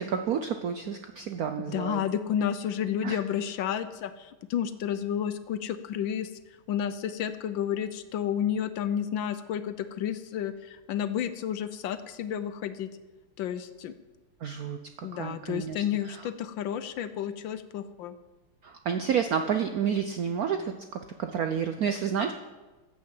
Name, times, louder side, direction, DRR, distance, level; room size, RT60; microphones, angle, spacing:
voice 1, 0.0-2.0 3.0-3.2 14.4-14.8 15.1-16.2 18.6-20.7 21.2-22.3, right 7 dB, 75° right, 7 dB, 0.8 m, -30 dB
voice 2, 1.7-6.3 6.7-12.9 13.4-13.9 15.0-18.1, left 9 dB, 70° left, 12 dB, 1.3 m, -31 dB
14.5 x 6.5 x 7.7 m, 1.2 s
omnidirectional pair, 2.3 m